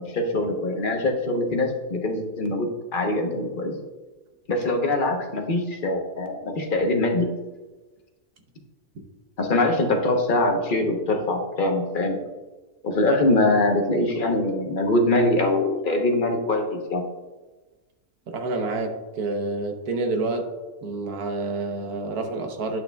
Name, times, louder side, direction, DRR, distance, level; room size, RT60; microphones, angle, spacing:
voice 1, 0.0-3.7 4.5-7.3 9.4-12.2 12.8-17.0, left 2 dB, 40° left, 2 dB, 1.0 m, -23 dB
voice 2, 18.3-20.5 20.8-22.8, right 3 dB, 75° right, 4 dB, 1.4 m, -28 dB
11.0 x 6.4 x 2.3 m, 1.2 s
omnidirectional pair, 1.6 m